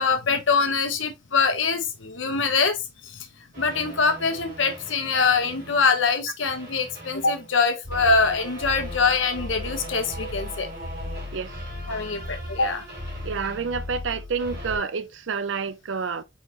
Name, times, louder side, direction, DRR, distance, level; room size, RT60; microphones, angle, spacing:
voice 1, 0.0-3.3 3.6-10.7 11.9-12.8, left 4 dB, 80° left, 1.0 m, -24 dB
sound 1, 3.5-6.1 6.4-14.8, left 1 dB, 50° right, 2.7 m, -37 dB
voice 2, 11.3-11.6 13.2-16.2, right 5 dB, 75° right, 0.5 m, -29 dB
4.1 x 4.0 x 3.0 m
head